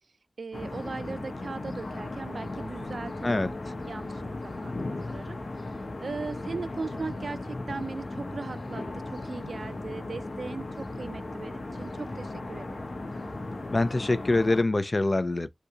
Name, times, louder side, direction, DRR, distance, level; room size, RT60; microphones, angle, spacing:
voice 1, 0.4-5.6 6.0-12.9, right 4 dB, 90° right, 0.3 m, -39 dB
sound 1, 0.5-14.6, left 2 dB, 75° left, 0.9 m, -37 dB
voice 2, 13.7-15.5, left 2 dB, 45° left, 0.5 m, -24 dB
3.9 x 2.3 x 2.9 m
wide cardioid pair, 70°, 0 cm